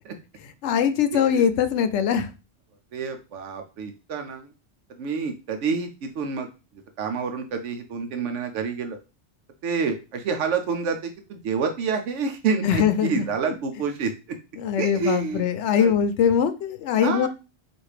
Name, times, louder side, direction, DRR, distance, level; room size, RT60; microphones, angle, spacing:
voice 1, 0.6-2.3 12.6-13.3 14.6-17.3, left 8 dB, 80° left, 9 dB, 0.9 m, -22 dB
voice 2, 2.9-4.5 5.0-5.9 6.1-6.5 7.0-9.0 9.6-14.1 14.8-15.5 15.8-15.9 17.0-17.3, right 5 dB, 90° right, 5 dB, 1.0 m, -28 dB
4.2 x 2.6 x 4.8 m, 0.30 s
omnidirectional pair, 1.2 m